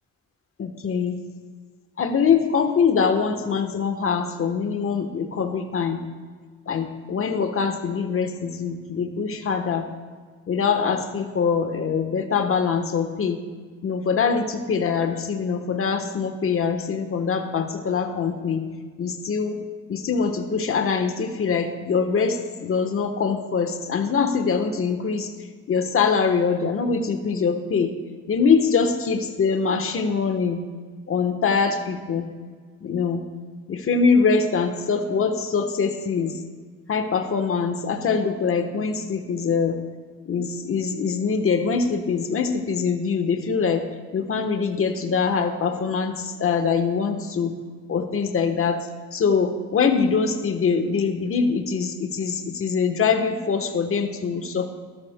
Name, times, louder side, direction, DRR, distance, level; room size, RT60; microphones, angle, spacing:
voice 1, 0.6-1.2 2.0-6.0 6.7-9.9 10.5-13.4 13.8-18.6 19.0-19.6 19.9-25.3 25.7-27.9 28.3-30.6 31.1-32.3 32.8-33.2 33.7-36.3 36.9-39.8 40.3-43.8 44.1-47.6 47.9-48.8 49.1-54.7, left 5 dB, 45° left, 7 dB, 1.2 m, -23 dB
13.0 x 12.5 x 2.2 m, 1.5 s
cardioid pair, 90°, 30 cm